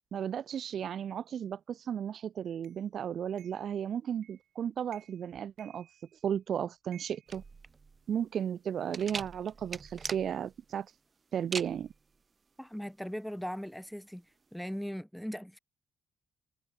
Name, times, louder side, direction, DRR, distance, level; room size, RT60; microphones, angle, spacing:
voice 1, 0.1-5.9 6.2-7.4 8.1-10.9 11.3-11.9, right 8 dB, 60° right, 1.9 m, -34 dB
sound 1, 2.6-2.8 3.4-3.7 4.2-4.5 4.9-5.3 5.6-6.4 6.9-8.2, right 12 dB, 75° right, 6.1 m, -59 dB
sound 2, 7.3-14.8, right 4 dB, 35° right, 3.5 m, -43 dB
voice 2, 12.6-14.2 14.5-15.6, equal, ahead, 3.6 m, -39 dB
cardioid pair, 90°, 0 cm